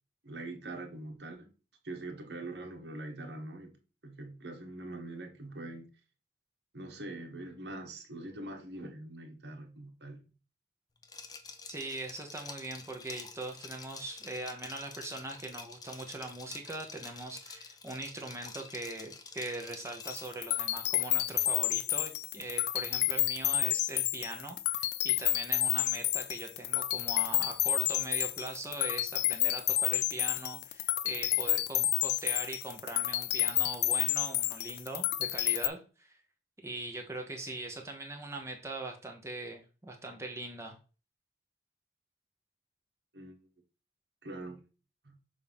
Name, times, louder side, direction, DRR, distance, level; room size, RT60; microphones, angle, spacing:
voice 1, 0.2-1.5 1.8-3.8 4.0-5.9 6.7-10.2 43.1-43.4 44.2-44.6 45.0-45.2, right 2 dB, 65° right, 1.3 m, -43 dB
Liquid, 11.0-20.4, left 5 dB, 20° left, 0.6 m, -48 dB
voice 2, 11.7-36.2 36.6-40.8, right 2 dB, 15° right, 0.9 m, -41 dB
sound 1, 20.0-35.7, left 13 dB, 65° left, 0.5 m, -30 dB
6.7 x 2.7 x 5.3 m
head